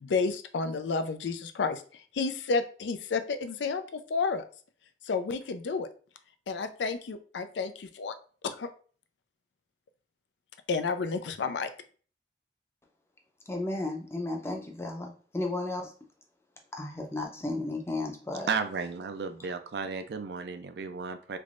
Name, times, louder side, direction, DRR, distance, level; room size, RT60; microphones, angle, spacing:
voice 1, 0.0-4.4 5.0-5.9 6.5-8.1 8.4-8.7 10.7-11.7, left 4 dB, 90° left, 9 dB, 0.4 m, -31 dB
voice 2, 13.5-15.9 16.7-18.5, left 2 dB, 15° left, 1 dB, 0.5 m, -34 dB
voice 3, 18.5-21.4, right 5 dB, 70° right, 8 dB, 0.4 m, -34 dB
3.4 x 3.1 x 2.4 m, 0.41 s
head